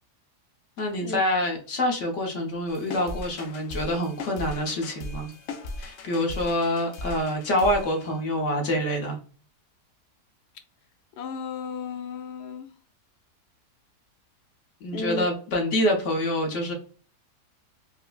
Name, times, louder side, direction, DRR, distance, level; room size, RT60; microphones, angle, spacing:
voice 1, 0.8-5.3 5.8-9.2 14.8-16.7, left 1 dB, 55° left, 1.1 m, -26 dB
sound 1, 2.7-8.5, left 2 dB, 70° left, 0.6 m, -38 dB
voice 2, 11.2-12.7 14.9-15.3, left 4 dB, 85° left, 1.2 m, -34 dB
4.6 x 2.1 x 2.4 m
omnidirectional pair, 1.7 m